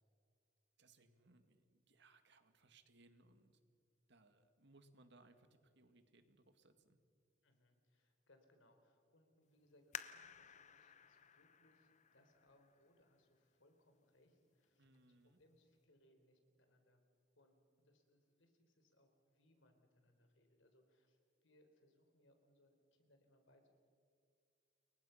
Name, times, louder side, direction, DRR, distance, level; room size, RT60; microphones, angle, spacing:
voice 1, 0.8-3.6 4.1-7.0 14.8-15.4, right 2 dB, 65° right, 8 dB, 2.0 m, -68 dB
voice 2, 7.4-17.0 17.3-23.8, left 1 dB, 75° left, 5 dB, 3.9 m, -73 dB
sound 1, 9.9-13.3 13.9-14.0 14.6-15.0 15.4-15.5, left 8 dB, 40° left, 1.0 m, -54 dB
29.0 x 23.0 x 5.8 m, 2.3 s
head